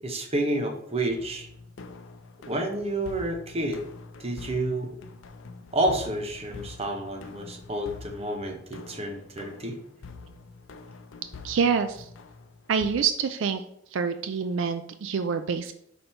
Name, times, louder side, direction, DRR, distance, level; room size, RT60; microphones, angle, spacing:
voice 1, 0.0-1.5 2.5-3.8 4.2-5.0 5.7-9.8, right 1 dB, 35° right, 4 dB, 0.9 m, -29 dB
sound 1, 1.1-12.9, left 3 dB, 85° left, 0.6 m, -45 dB
voice 2, 11.4-12.1 12.7-13.6 13.9-15.7, right 6 dB, 80° right, 9 dB, 0.4 m, -26 dB
5.1 x 4.3 x 4.4 m, 0.71 s
head